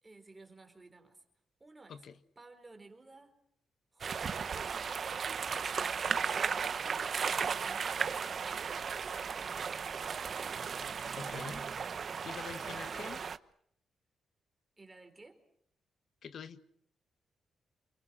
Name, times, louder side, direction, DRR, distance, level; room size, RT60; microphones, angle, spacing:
voice 1, 0.0-1.2 1.6-2.0 2.4-3.4 3.9-5.1 5.7-9.2 12.4-13.2 14.8-15.4, right 3 dB, 15° right, 4.7 m, -55 dB
sound 1, 4.0-13.4, right 6 dB, 45° right, 1.1 m, -35 dB
voice 2, 11.1-11.7 12.2-13.2 16.2-16.6, left 7 dB, 60° left, 1.7 m, -45 dB
29.0 x 29.0 x 6.4 m
wide cardioid pair, 145°, 0 cm